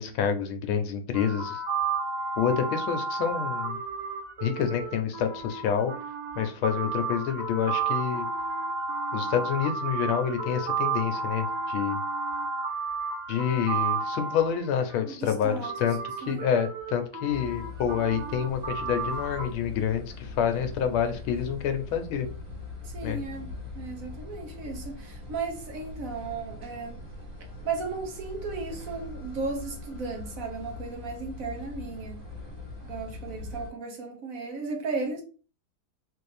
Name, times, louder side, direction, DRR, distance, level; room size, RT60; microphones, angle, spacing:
voice 1, 0.0-1.6 2.4-3.8 4.4-5.9 6.3-8.3 9.1-12.0 13.3-22.3 23.0-23.2, left 8 dB, 85° left, 1.5 m, -28 dB
sound 1, 1.1-14.9 15.6-19.5, right 4 dB, 25° right, 1.2 m, -32 dB
voice 2, 15.2-15.9 16.2-16.5 22.8-27.0 27.6-32.2 32.9-35.2, right 4 dB, 65° right, 0.9 m, -35 dB
sound 2, 17.3-33.7, left 2 dB, 5° right, 1.2 m, -41 dB
4.1 x 2.6 x 3.2 m
omnidirectional pair, 2.3 m